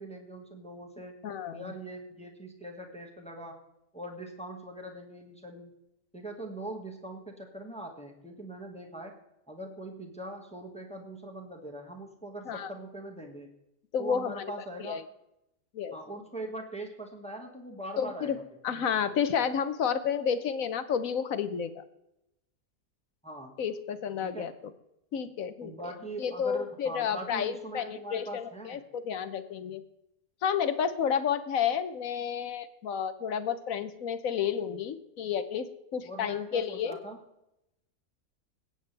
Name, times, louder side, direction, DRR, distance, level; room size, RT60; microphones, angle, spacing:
voice 1, 0.0-1.1 1.5-3.6 3.9-5.7 6.1-9.2 9.5-13.5 14.0-15.0 15.9-18.4 23.2-23.5 24.2-24.5 25.6-28.8 36.0-37.2, right 1 dB, 5° left, 2 dB, 1.6 m, -42 dB
voice 2, 1.2-1.7 12.5-12.7 13.9-14.5 14.8-15.0 15.7-16.0 18.0-18.4 18.6-21.8 23.6-24.5 25.1-25.9 26.2-29.8 30.4-37.0, left 7 dB, 60° left, 12 dB, 1.2 m, -31 dB
21.5 x 9.0 x 3.3 m, 0.86 s
omnidirectional pair, 1.7 m